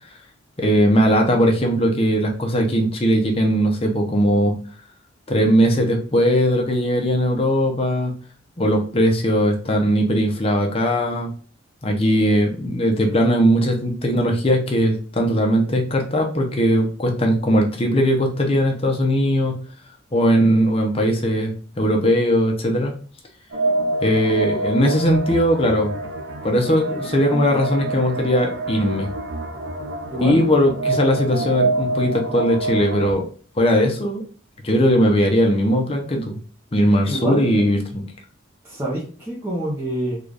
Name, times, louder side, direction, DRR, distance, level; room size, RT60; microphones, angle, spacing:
voice 1, 0.6-4.6 5.3-8.1 8.6-11.3 11.8-19.6 20.1-23.0 24.0-26.0 26.4-29.1 30.2-33.3 33.6-34.2 34.6-36.4 36.7-38.0, equal, 30° left, 2 dB, 0.6 m, -19 dB
sound 1, 23.5-33.1, right 2 dB, 60° right, 0.5 m, -26 dB
voice 2, 30.1-30.5 37.1-37.5 38.6-40.2, right 1 dB, 10° right, -7 dB, 0.7 m, -26 dB
3.8 x 2.4 x 3.2 m, 0.42 s
head